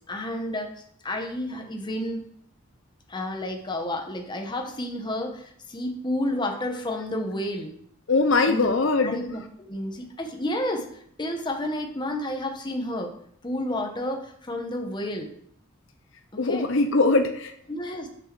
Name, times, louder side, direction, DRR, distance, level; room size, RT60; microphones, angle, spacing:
voice 1, 0.1-0.7 1.0-2.2 3.1-7.7 8.5-8.7 9.0-13.1 13.4-15.3 16.4-16.7 17.7-18.1, left 1 dB, 20° left, 3 dB, 1.1 m, -31 dB
voice 2, 8.1-9.2 16.4-17.5, left 3 dB, 65° left, 7 dB, 0.7 m, -21 dB
6.3 x 6.3 x 6.1 m, 0.66 s
head